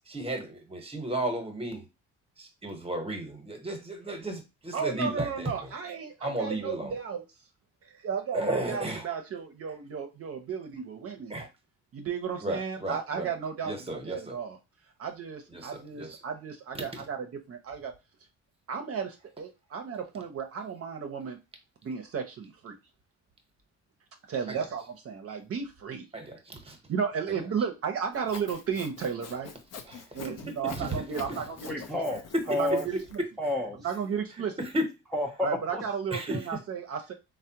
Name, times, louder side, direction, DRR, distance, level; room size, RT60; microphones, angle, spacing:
voice 1, 0.1-1.8 2.4-5.5 6.2-6.9 8.3-9.1 11.3-11.5 12.4-13.3 13.6-14.3 15.5-16.2 16.7-17.0 24.5-24.6 26.1-26.8 27.3-27.4 29.9-31.0 32.3-32.4 34.6-34.9 36.1-36.4, right 1 dB, 20° right, 0.9 m, -34 dB
voice 2, 4.7-7.2 7.8-11.3 11.9-14.6 15.0-17.9 18.7-21.4 21.8-22.8 24.3-26.0 26.9-29.5 30.1-32.0 32.5-33.2 33.8-34.6 35.4-37.1, right 6 dB, 50° right, 0.6 m, -34 dB
Sawing, 28.1-33.2, left 6 dB, 55° left, 0.6 m, -45 dB
voice 3, 31.7-32.8 33.4-33.9 35.1-35.8, left 1 dB, ahead, 0.5 m, -30 dB
3.3 x 2.1 x 2.8 m
cardioid pair, 90°, 30 cm